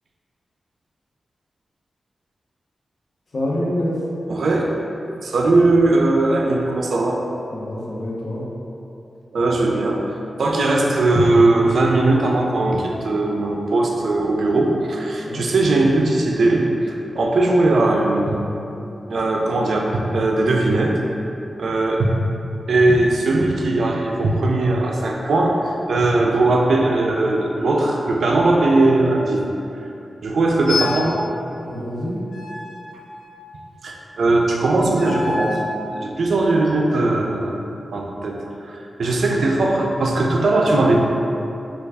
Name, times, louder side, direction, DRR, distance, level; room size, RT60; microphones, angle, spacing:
voice 1, 3.3-4.0 7.5-8.4 15.2-15.4 31.6-32.2, left 1 dB, 55° left, -5 dB, 0.7 m, -26 dB
voice 2, 4.3-4.7 5.2-7.2 9.3-10.1 10.4-18.4 19.1-21.0 21.6-22.1 22.7-29.5 29.8-29.9 30.2-31.2 33.8-35.6 35.9-37.6 37.9-41.0, right 2 dB, 75° right, 0 dB, 0.3 m, -19 dB
sound 1, 30.7-31.2 32.3-33.6 34.9-35.8, left 3 dB, 80° left, 0.3 m, -28 dB
3.3 x 2.3 x 3.3 m, 2.8 s
wide cardioid pair, 110°, 0 cm